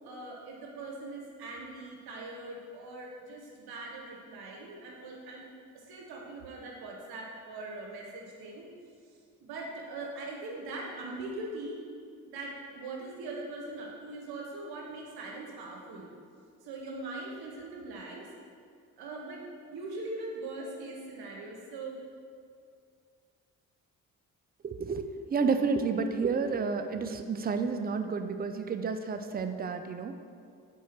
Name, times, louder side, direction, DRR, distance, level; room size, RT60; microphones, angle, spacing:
voice 1, 0.0-5.4 5.7-8.7 9.4-11.8 12.3-16.1 16.6-18.3 19.0-19.4 19.7-22.0, right 2 dB, 70° right, -1 dB, 0.9 m, -41 dB
voice 2, 24.6-30.2, right 5 dB, 25° right, 8 dB, 0.5 m, -30 dB
4.6 x 4.2 x 5.8 m, 2.3 s
hypercardioid pair, 45°, 38 cm